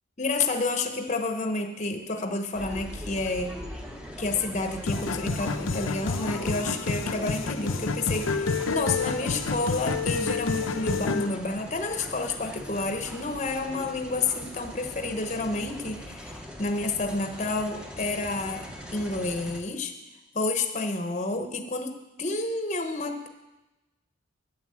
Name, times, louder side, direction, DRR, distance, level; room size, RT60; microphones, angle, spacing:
voice 1, 0.2-3.5 4.2-19.9 20.3-23.3, left 3 dB, 35° left, 6 dB, 0.9 m, -30 dB
sound 1, 2.5-19.6, equal, 5° right, 0.9 m, -41 dB
sound 2, 4.9-11.3, left 4 dB, 75° left, 0.7 m, -29 dB
9.2 x 8.4 x 7.6 m, 1.1 s
head